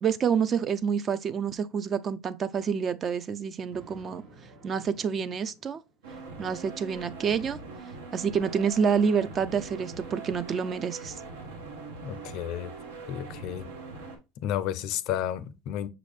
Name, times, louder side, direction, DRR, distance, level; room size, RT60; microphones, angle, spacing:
voice 1, 0.0-4.2 4.6-5.8 6.4-7.6 8.1-11.1, right 6 dB, 40° right, 0.3 m, -28 dB
Thunder, 3.7-6.2, right 2 dB, 65° right, 1.1 m, -53 dB
sound 1, 6.0-14.2, right 3 dB, 85° right, 0.8 m, -42 dB
voice 2, 12.0-12.7 13.1-13.7 14.4-15.9, left 11 dB, 60° left, 0.4 m, -32 dB
5.6 x 2.5 x 3.2 m
hypercardioid pair, 85°, 0 cm